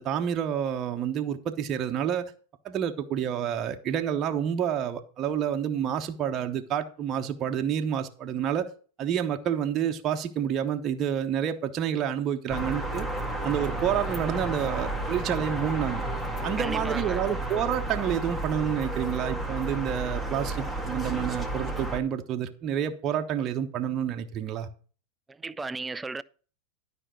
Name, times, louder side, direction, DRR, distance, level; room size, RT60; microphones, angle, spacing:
voice 1, 0.0-2.3 2.6-8.7 9.0-13.1 13.4-16.1 16.4-24.7, right 9 dB, 30° right, 1.0 m, -29 dB
sound 1, 12.5-22.0, right 2 dB, 10° left, 1.8 m, -32 dB
voice 2, 16.6-17.2 25.3-26.2, right 3 dB, 10° right, 0.4 m, -35 dB
12.5 x 5.3 x 6.2 m
figure-of-eight pair, 90°, 0 cm